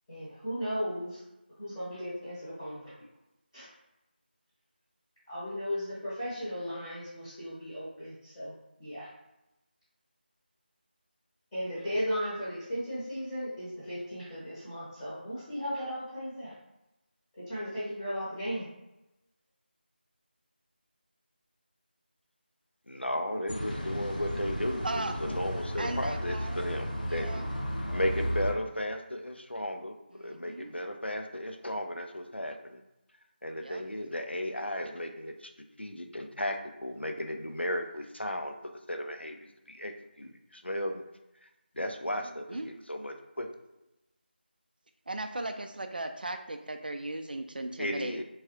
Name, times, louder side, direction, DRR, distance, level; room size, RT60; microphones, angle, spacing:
voice 1, 0.1-1.2 1.6-2.9 3.5-3.7 5.3-8.5 8.8-9.1 11.5-16.5 17.4-18.7, equal, 10° left, -13 dB, 0.9 m, -36 dB
voice 2, 22.9-27.3 27.9-32.8 33.4-35.5 35.8-41.0 41.4-41.5 41.7-43.5 47.8-48.2, left 1 dB, 90° left, 5 dB, 0.6 m, -35 dB
sound 1, 23.5-28.5, equal, 50° left, 0.8 m, -34 dB
voice 3, 24.8-25.1 25.8-26.6 27.1-27.6 30.1-30.8 33.5-33.8 42.2-42.7 45.1-48.2, right 2 dB, 55° right, 7 dB, 0.4 m, -37 dB
3.5 x 3.1 x 2.9 m, 0.95 s
figure-of-eight pair, 165°, 6 cm